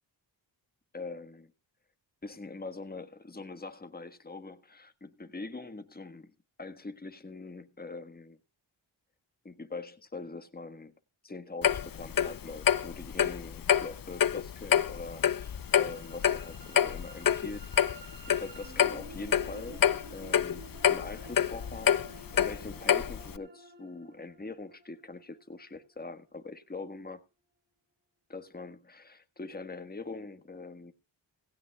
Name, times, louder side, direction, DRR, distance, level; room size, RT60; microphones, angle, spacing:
voice 1, 0.9-1.5 2.2-6.3 6.6-8.4 9.4-10.9 11.2-17.7 18.3-19.8 20.1-27.2 28.3-30.9, left 3 dB, 20° left, 1.5 m, -43 dB
Clock, 11.6-23.4, left 9 dB, 45° left, 0.7 m, -27 dB
sound 1, 15.0-26.8, right 2 dB, 25° right, 7.2 m, -52 dB
16.5 x 16.5 x 2.3 m
cardioid pair, 50°, 46 cm